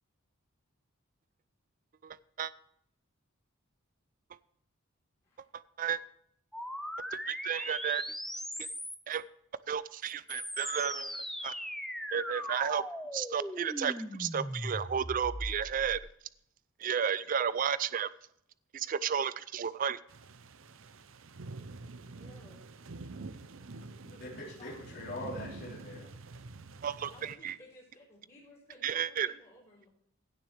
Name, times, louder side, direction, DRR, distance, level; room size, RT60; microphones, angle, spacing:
voice 1, 2.0-2.5 5.5-6.0 7.1-8.0 8.6-8.7 9.1-9.2 9.7-11.5 12.1-12.9 13.1-16.0 16.8-18.1 18.7-20.0 26.8-27.5 28.8-29.3, right 8 dB, 40° right, 17 dB, 0.3 m, -33 dB
Rise and Fall, 6.5-9.2 10.0-16.0, equal, ahead, 0.7 m, -39 dB
sound 1, 20.1-27.3, right 3 dB, 65° right, 0.7 m, -47 dB
voice 2, 22.1-22.6 24.6-25.5 27.1-29.9, left 1 dB, 35° left, -9 dB, 3.5 m, -56 dB
voice 3, 24.0-26.1, left 1 dB, 50° left, -5 dB, 3.6 m, -43 dB
16.0 x 6.8 x 3.3 m, 0.71 s
head